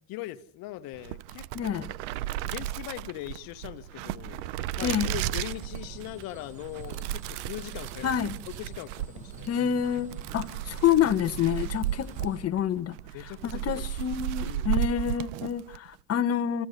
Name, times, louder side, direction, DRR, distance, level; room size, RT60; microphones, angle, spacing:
voice 1, 0.1-1.8 2.4-4.4 4.8-8.2 8.6-9.5 10.7-10.8 13.1-13.9 14.4-14.7, left 15 dB, 75° left, 1.4 m, -40 dB
sound 1, 0.9-15.9, right 13 dB, 90° right, 0.9 m, -34 dB
voice 2, 1.5-1.9 4.8-5.2 8.0-8.4 9.5-16.7, left 9 dB, 45° left, 1.5 m, -28 dB
sound 2, 5.5-12.4, right 2 dB, 20° right, 7.4 m, -48 dB
29.5 x 15.5 x 6.8 m
supercardioid pair, 90°, 35 cm